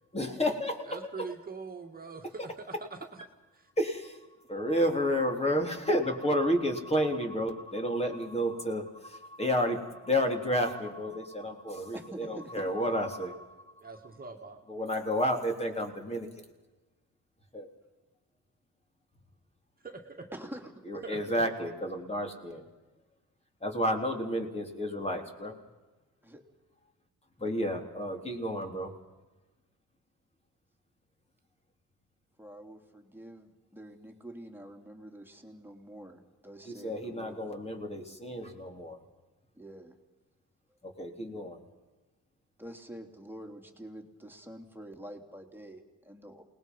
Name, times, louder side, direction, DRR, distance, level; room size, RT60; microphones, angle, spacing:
voice 1, 0.1-1.3 3.8-4.2 4.5-13.4 14.7-16.3 17.5-17.7 20.9-22.6 23.6-25.6 27.4-28.9 36.7-39.0 40.8-41.6, equal, 20° left, 3 dB, 3.5 m, -31 dB
voice 2, 0.8-3.2 3.5-3.7 13.8-14.6 19.8-20.3 21.0-21.2, right 4 dB, 30° right, 2 dB, 2.2 m, -43 dB
voice 3, 11.9-12.7 20.3-21.1 26.2-26.4 32.4-37.4 39.5-40.0 42.6-46.4, right 1 dB, 5° right, 3 dB, 3.1 m, -47 dB
28.5 x 19.5 x 5.5 m, 1.2 s
cardioid pair, 90°, 30 cm